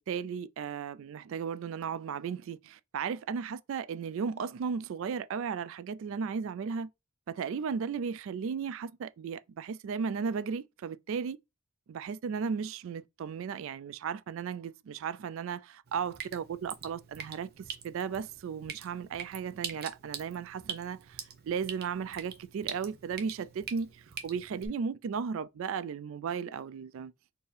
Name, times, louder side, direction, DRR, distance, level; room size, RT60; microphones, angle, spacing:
voice 1, 0.0-6.9 7.3-11.4 11.9-27.1, right 6 dB, 65° right, 0.3 m, -35 dB
Drip, 15.9-24.7, right 7 dB, 45° right, 0.8 m, -44 dB
4.4 x 2.7 x 3.2 m
head